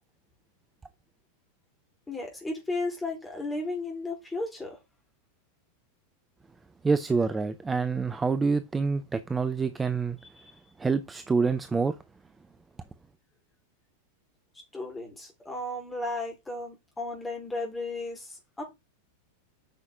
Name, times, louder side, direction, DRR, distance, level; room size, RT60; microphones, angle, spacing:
voice 1, 2.1-4.8 10.4-10.5 14.7-18.6, left 2 dB, 10° left, 4.4 m, -34 dB
voice 2, 6.8-10.2 10.8-12.0, right 4 dB, 15° right, 0.7 m, -26 dB
8.9 x 6.1 x 3.8 m
figure-of-eight pair, 90°, 0 cm